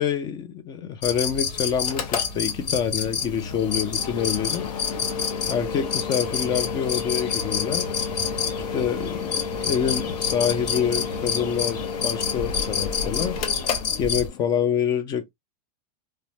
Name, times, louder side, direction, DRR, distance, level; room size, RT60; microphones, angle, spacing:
voice 1, 0.0-4.7 5.5-7.9 8.7-13.4 14.0-15.3, left 8 dB, 20° left, 0.4 m, -26 dB
sound 1, 1.0-14.3, left 6 dB, 80° left, 1.2 m, -29 dB
Mechanical fan, 1.8-14.6, left 6 dB, 60° left, 0.8 m, -32 dB
3.2 x 2.1 x 2.7 m
supercardioid pair, 155°, 21 cm